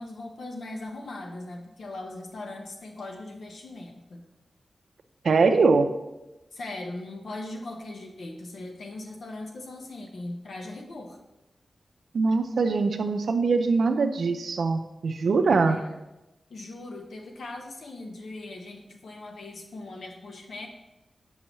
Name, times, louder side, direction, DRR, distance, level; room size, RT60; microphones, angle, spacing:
voice 1, 0.0-4.2 6.5-11.2 15.7-16.0 16.5-20.7, left 2 dB, 75° left, 3 dB, 0.9 m, -39 dB
voice 2, 5.2-5.9 12.1-15.8, right 4 dB, 75° right, 8 dB, 0.5 m, -22 dB
7.4 x 5.5 x 3.0 m, 0.99 s
wide cardioid pair, 165°, 0 cm